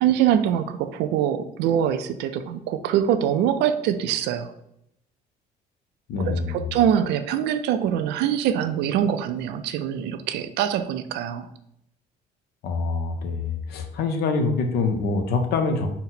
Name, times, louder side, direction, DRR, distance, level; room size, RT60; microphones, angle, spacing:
voice 1, 0.0-4.5 6.3-11.5, right 9 dB, 85° right, 11 dB, 0.4 m, -24 dB
voice 2, 6.1-6.7 12.6-15.9, left 4 dB, 70° left, 6 dB, 0.6 m, -25 dB
4.0 x 2.0 x 4.0 m, 0.78 s
cardioid pair, 110°, 17 cm